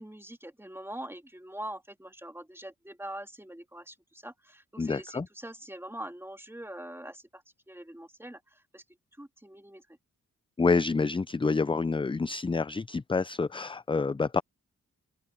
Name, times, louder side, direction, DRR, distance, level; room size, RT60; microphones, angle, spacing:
voice 1, 0.0-8.8 9.2-9.8, right 1 dB, 5° right, 2.8 m, -43 dB
voice 2, 4.8-5.3 10.6-14.4, left 4 dB, 15° left, 0.4 m, -28 dB
open air
cardioid pair, 55°, 34 cm